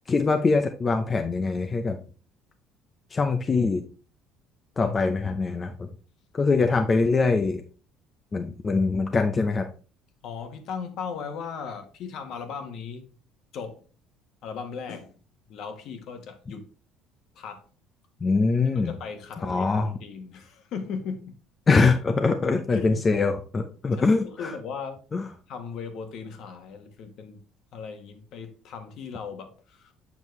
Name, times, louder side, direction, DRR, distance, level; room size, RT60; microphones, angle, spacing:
voice 1, 0.1-2.0 3.1-3.8 4.8-5.9 6.3-7.6 8.3-9.7 18.2-18.9 19.4-19.9 21.7-24.5 25.1-25.2, left 4 dB, 20° left, 0.6 m, -23 dB
voice 2, 10.2-13.1 13.5-13.8 14.4-15.1 15.5-16.7 17.3-17.6 18.7-21.4 22.7-23.0 23.9-25.0 25.5-27.4 27.7-29.9, left 6 dB, 55° left, 1.4 m, -37 dB
7.3 x 6.3 x 3.2 m
cardioid pair, 140°, 0 cm